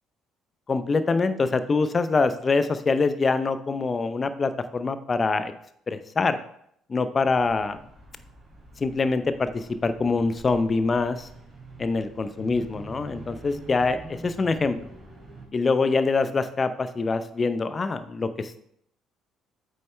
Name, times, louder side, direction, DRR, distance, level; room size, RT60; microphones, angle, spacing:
voice 1, 0.7-5.5 5.9-6.4 6.9-7.8 8.8-11.3 11.8-14.8 15.5-18.6, left 4 dB, 35° left, 12 dB, 0.7 m, -24 dB
sound 1, 7.2-15.5, right 2 dB, 25° right, 3.5 m, -46 dB
8.7 x 6.4 x 3.3 m, 0.71 s
figure-of-eight pair, 50°, 0 cm